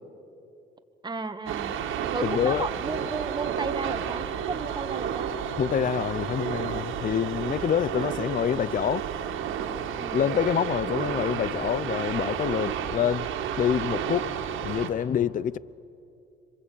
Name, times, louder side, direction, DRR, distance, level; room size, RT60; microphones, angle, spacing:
voice 1, 1.0-1.7 2.1-5.3 8.0-8.1 10.0-10.3, right 4 dB, 20° right, 1.5 m, -33 dB
sound 1, 1.5-14.9, right 8 dB, 85° right, 2.0 m, -31 dB
voice 2, 2.2-2.7 5.6-9.1 10.1-13.3 13.6-14.3 14.6-15.6, left 9 dB, 45° left, 0.5 m, -26 dB
26.5 x 25.5 x 8.5 m
cardioid pair, 90°, 20 cm